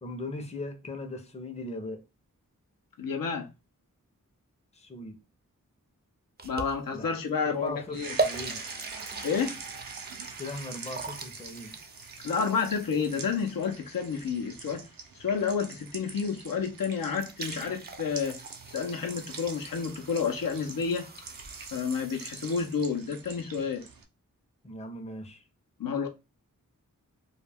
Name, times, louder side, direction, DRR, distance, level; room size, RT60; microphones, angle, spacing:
voice 1, 0.0-2.0 4.7-5.2 6.9-7.1 7.4-8.6 10.4-11.7 24.6-25.4, left 2 dB, 20° left, 0.5 m, -39 dB
voice 2, 3.0-3.5 6.4-8.2 9.2-9.6 12.2-14.9 15.1-21.1 21.7-23.9 25.8-26.1, left 6 dB, 85° left, 0.6 m, -30 dB
sound 1, 6.4-7.1 7.7-7.8 8.2-13.4 16.8-16.9 17.1-22.7, right 3 dB, 30° right, 0.4 m, -39 dB
sound 2, 7.9-24.0, right 5 dB, 80° right, 0.5 m, -45 dB
2.3 x 2.1 x 3.3 m
wide cardioid pair, 50°, 34 cm